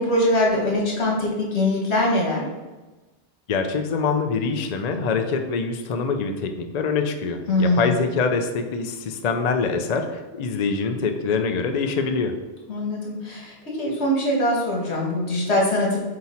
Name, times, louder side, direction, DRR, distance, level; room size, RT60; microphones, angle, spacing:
voice 1, 0.0-2.4 7.5-8.0 12.7-16.0, left 1 dB, 75° left, -2 dB, 1.7 m, -22 dB
voice 2, 3.5-12.3, left 4 dB, 50° left, 6 dB, 0.5 m, -24 dB
7.7 x 2.9 x 4.2 m, 1.2 s
omnidirectional pair, 1.1 m